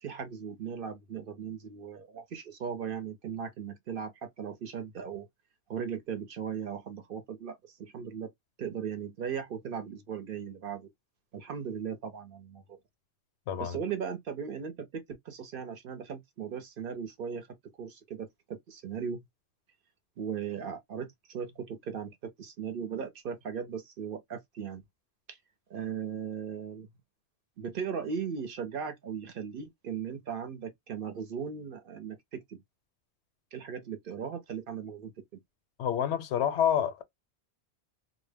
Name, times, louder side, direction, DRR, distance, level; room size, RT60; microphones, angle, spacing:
voice 1, 0.0-5.3 5.7-8.3 8.6-10.9 11.3-12.8 13.6-17.5 17.8-19.2 20.2-24.8 25.3-25.4 25.7-26.9 27.6-32.6 33.5-35.1, right 7 dB, 60° right, 0.7 m, -38 dB
voice 2, 13.5-13.8 35.8-37.0, left 9 dB, 80° left, 0.8 m, -28 dB
2.1 x 2.0 x 3.3 m
omnidirectional pair, 1.1 m